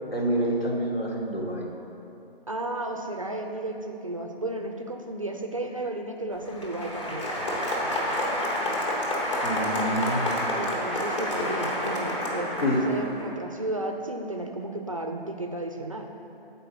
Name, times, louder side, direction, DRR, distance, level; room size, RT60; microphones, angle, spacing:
voice 1, 0.1-1.7 9.4-10.4 12.6-12.8, equal, 75° left, -1 dB, 1.4 m, -27 dB
voice 2, 2.5-7.3 10.5-16.1, right 2 dB, 35° right, 4 dB, 0.4 m, -33 dB
Applause, 6.3-13.2, left 1 dB, 30° left, 1.1 m, -29 dB
7.7 x 4.4 x 5.2 m, 2.8 s
figure-of-eight pair, 150°, 30 cm